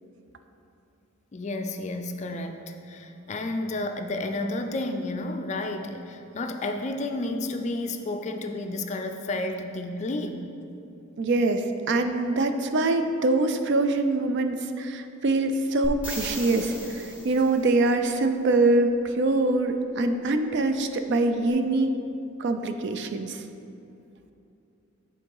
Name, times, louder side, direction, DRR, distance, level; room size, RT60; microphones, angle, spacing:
voice 1, 1.3-10.5, left 2 dB, 35° left, 5 dB, 0.3 m, -31 dB
voice 2, 11.2-21.9 22.4-23.4, right 2 dB, 55° right, 7 dB, 0.4 m, -24 dB
sound 1, 15.8-17.7 21.5-21.6, left 1 dB, 5° right, 1.0 m, -37 dB
7.7 x 3.7 x 4.6 m, 2.7 s
head